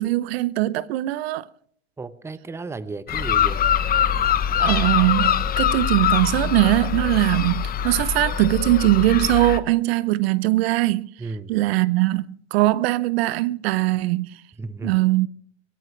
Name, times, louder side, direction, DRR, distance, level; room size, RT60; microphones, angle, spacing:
voice 1, 0.0-1.5 4.6-11.1 11.5-14.4 14.8-15.3, right 17 dB, 60° right, 0.8 m, -21 dB
voice 2, 2.0-3.6 11.2-11.5 14.6-15.0, right 3 dB, 10° right, 0.9 m, -34 dB
sound 1, 3.1-9.6, left 9 dB, 25° left, 1.2 m, -23 dB
24.0 x 16.0 x 3.3 m
hypercardioid pair, 120°, 34 cm